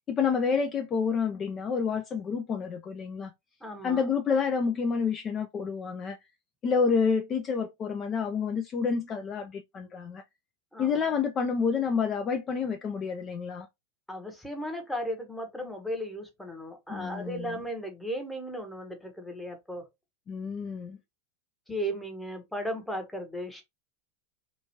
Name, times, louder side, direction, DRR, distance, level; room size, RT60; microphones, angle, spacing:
voice 1, 0.1-3.3 3.8-6.2 6.6-10.2 10.8-13.7 16.9-17.6 20.3-21.0, left 5 dB, 30° left, 0.4 m, -29 dB
voice 2, 3.6-4.0 10.7-11.1 14.1-19.8 21.7-23.6, equal, 5° left, 0.9 m, -36 dB
2.9 x 2.4 x 2.7 m
hypercardioid pair, 105°, 0 cm